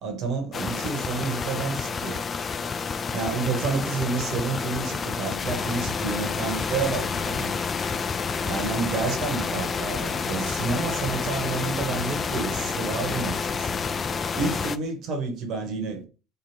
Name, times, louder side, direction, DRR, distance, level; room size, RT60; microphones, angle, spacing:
voice 1, 0.0-2.2 3.1-7.6 8.4-13.7 14.3-16.0, right 4 dB, 55° right, 1.4 m, -30 dB
sound 1, 0.5-14.8, left 5 dB, 35° left, 0.3 m, -29 dB
3.3 x 2.5 x 4.2 m
hypercardioid pair, 80°, 0 cm